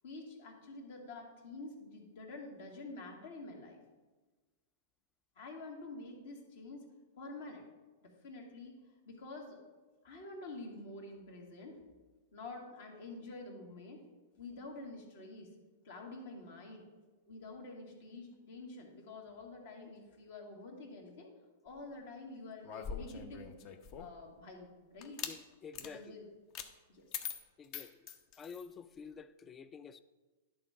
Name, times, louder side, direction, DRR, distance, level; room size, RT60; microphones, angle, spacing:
voice 1, 0.0-3.8 5.4-6.8 7.2-7.6 8.0-8.8 9.1-9.6 10.0-11.8 12.3-14.0 14.4-15.5 15.8-16.9 17.3-21.3 21.6-23.5 24.0-25.2 25.8-26.3 26.9-27.0, left 2 dB, 70° left, 1.9 m, -48 dB
sound 1, 22.6-24.2 25.0-25.4 25.7-25.9 26.5-26.7 27.1-28.7, left 7 dB, 45° left, 0.7 m, -43 dB
voice 2, 25.2-26.2 27.6-28.0 28.4-30.0, left 6 dB, 25° left, 0.4 m, -50 dB
10.5 x 3.8 x 5.6 m
hypercardioid pair, 110°, 0 cm